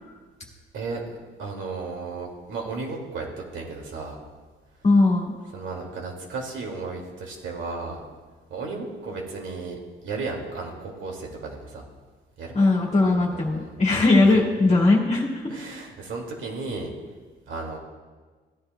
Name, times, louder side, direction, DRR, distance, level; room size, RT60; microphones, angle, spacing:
voice 1, 0.7-4.2 5.5-8.0 8.5-11.8 12.4-12.6 13.0-14.1 14.3-14.4 14.7-14.8 15.5-16.9 17.5-17.8, right 3 dB, 75° right, 0 dB, 2.3 m, -34 dB
voice 2, 4.8-5.3 12.5-15.5, left 2 dB, 35° left, -3 dB, 1.9 m, -19 dB
16.5 x 10.5 x 2.2 m, 1.4 s
cardioid pair, 90°, 20 cm